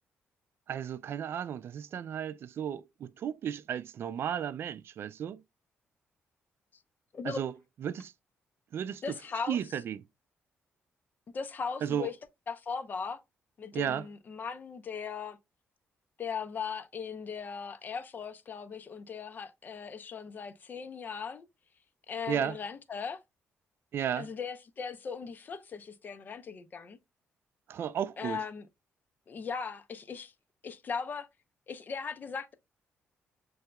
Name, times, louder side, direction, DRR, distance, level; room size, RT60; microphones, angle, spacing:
voice 1, 0.7-5.4 7.2-7.5 7.8-8.1 8.7-9.0 9.5-10.0 11.8-12.1 13.7-14.1 22.3-22.6 23.9-24.3 27.7-28.4, right 9 dB, 60° right, 0.3 m, -34 dB
voice 2, 9.0-9.6 11.3-12.1 12.5-13.2 13.6-15.4 16.2-21.5 22.1-23.2 24.2-27.0 28.2-28.7 29.3-30.3 30.6-31.3 31.7-32.5, left 6 dB, 40° left, 0.7 m, -38 dB
7.5 x 2.8 x 2.2 m
cardioid pair, 120°, 5 cm